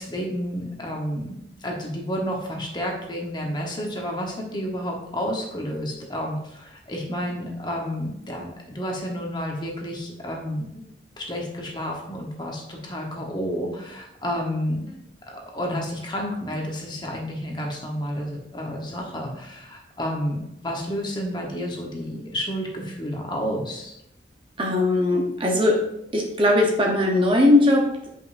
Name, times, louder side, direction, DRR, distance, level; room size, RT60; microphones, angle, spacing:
voice 1, 0.0-1.3 1.6-10.8 11.2-15.0 15.3-23.9, equal, 25° left, 0 dB, 1.1 m, -30 dB
voice 2, 24.6-25.8 26.1-28.1, left 1 dB, 25° right, 0 dB, 0.8 m, -19 dB
9.2 x 5.4 x 2.6 m, 0.81 s
head